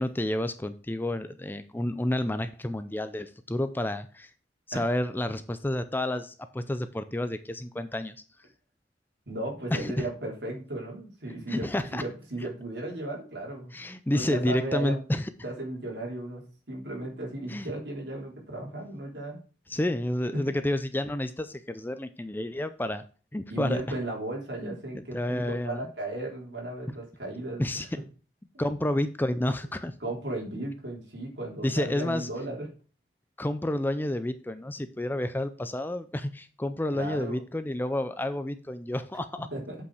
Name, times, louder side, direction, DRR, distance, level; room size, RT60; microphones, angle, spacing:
voice 1, 0.0-4.3 4.7-8.2 9.7-10.1 11.5-12.0 13.7-15.2 17.5-17.7 19.7-23.0 23.3-23.8 24.6-25.9 27.6-27.9 28.6-29.9 31.6-32.3 33.4-39.5, left 1 dB, 10° left, 11 dB, 0.5 m, -30 dB
voice 2, 9.3-13.7 14.1-15.0 15.4-19.4 20.3-20.4 23.5-27.9 28.5-28.6 30.0-32.7 36.9-37.4 39.5-39.8, right 1 dB, 65° right, -1 dB, 3.7 m, -35 dB
8.0 x 5.5 x 4.9 m, 0.37 s
head